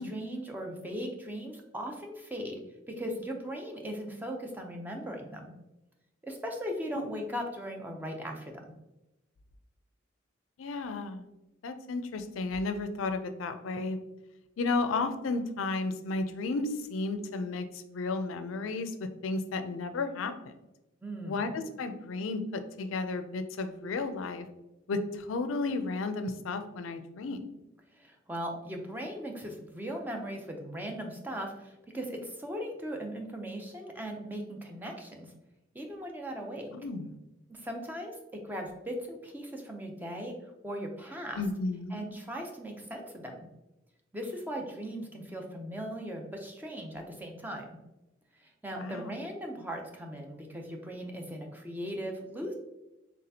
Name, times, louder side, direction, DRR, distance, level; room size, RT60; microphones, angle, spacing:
voice 1, 0.0-2.6 3.0-5.5 6.2-8.6 21.0-21.5 27.9-35.3 35.7-36.7 37.5-38.2 38.4-40.3 40.6-41.4 41.9-43.4 44.1-47.7 48.4-52.5, equal, 10° right, 2 dB, 0.5 m, -38 dB
voice 2, 10.6-11.3 11.6-14.0 14.6-20.3 21.2-24.5 24.9-27.4 36.7-37.1 41.4-42.1 48.7-49.1, left 3 dB, 85° left, 10 dB, 0.4 m, -33 dB
4.1 x 3.4 x 2.7 m, 0.95 s
head